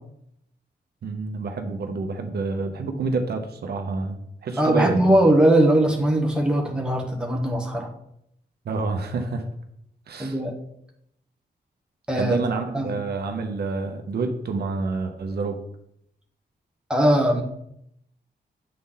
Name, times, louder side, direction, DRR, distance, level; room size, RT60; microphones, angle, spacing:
voice 1, 1.0-5.1 8.6-9.5 10.1-10.4 12.2-15.6, right 4 dB, 65° right, 5 dB, 0.8 m, -28 dB
voice 2, 4.6-7.9 10.2-10.5 12.1-12.4 12.7-12.9 16.9-17.4, right 1 dB, 5° right, 0 dB, 1.0 m, -20 dB
7.6 x 4.2 x 3.8 m, 0.74 s
wide cardioid pair, 175°, 18 cm